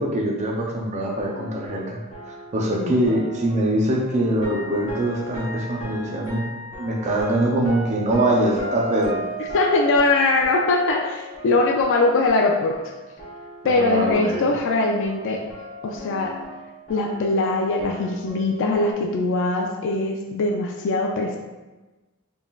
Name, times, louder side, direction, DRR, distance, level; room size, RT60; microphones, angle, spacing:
voice 1, 0.0-2.0 2.3-6.5 6.8-9.2 13.6-14.5, right 1 dB, 30° right, -2 dB, 0.5 m, -23 dB
sound 1, 1.1-13.8 14.1-18.9, left 1 dB, 35° left, 1.1 m, -36 dB
voice 2, 9.5-12.8 13.6-15.4 15.8-16.3 16.9-21.4, left 2 dB, 60° left, 2 dB, 0.4 m, -21 dB
3.8 x 3.7 x 2.3 m, 1.2 s
head